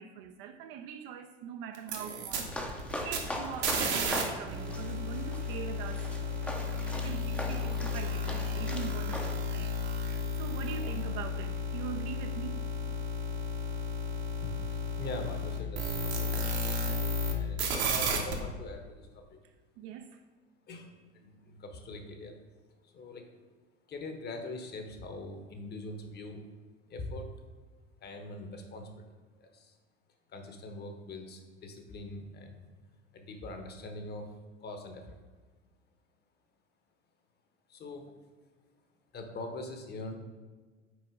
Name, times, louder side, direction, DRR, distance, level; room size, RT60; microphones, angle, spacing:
voice 1, 0.0-6.1 7.0-9.8 10.3-12.6 19.8-20.2, right 8 dB, 40° right, 7 dB, 0.4 m, -42 dB
sound 1, 1.8-4.2 4.5-17.3 17.6-18.3, left 1 dB, 65° right, 1.1 m, -33 dB
sound 2, 2.4-9.3, left 1 dB, 5° left, 0.6 m, -41 dB
voice 2, 14.4-16.8 17.3-19.4 20.7-22.4 22.8-23.3 23.9-26.4 26.9-27.3 28.0-29.0 29.4-29.8 30.3-32.7 33.1-34.3 34.6-35.2 37.7-38.1 39.1-40.1, left 2 dB, 30° left, 5 dB, 0.9 m, -43 dB
6.2 x 4.4 x 3.6 m, 1.4 s
figure-of-eight pair, 80°, 35 cm